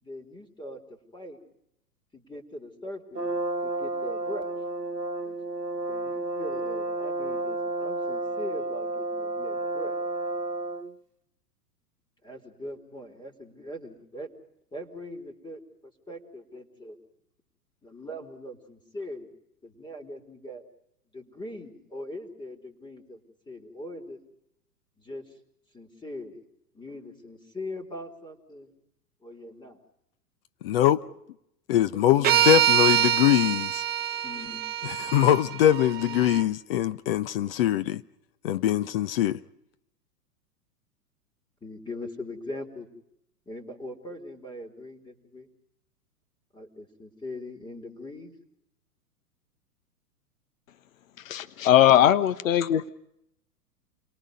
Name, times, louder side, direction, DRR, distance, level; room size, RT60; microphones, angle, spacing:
voice 1, 0.0-1.4 2.1-3.3 3.6-4.5 5.2-5.4 5.9-10.0 12.2-14.3 14.7-17.0 17.8-19.3 19.6-20.6 21.1-24.2 25.0-25.2 25.7-26.4 26.7-28.7 29.2-29.8 31.8-32.5 34.2-34.6 36.0-36.2 41.6-42.9 43.5-45.5 46.5-48.3, left 1 dB, 10° left, 4.0 m, -41 dB
Brass instrument, 3.1-10.9, right 2 dB, 85° right, 1.1 m, -31 dB
voice 2, 30.6-31.0 31.7-33.8 34.8-38.0 38.4-39.4, left 12 dB, 40° left, 0.8 m, -23 dB
sound 1, 32.2-36.4, right 10 dB, 20° right, 1.1 m, -25 dB
voice 3, 51.2-52.9, left 11 dB, 55° left, 1.2 m, -20 dB
30.0 x 23.0 x 5.3 m
figure-of-eight pair, 100°, 47 cm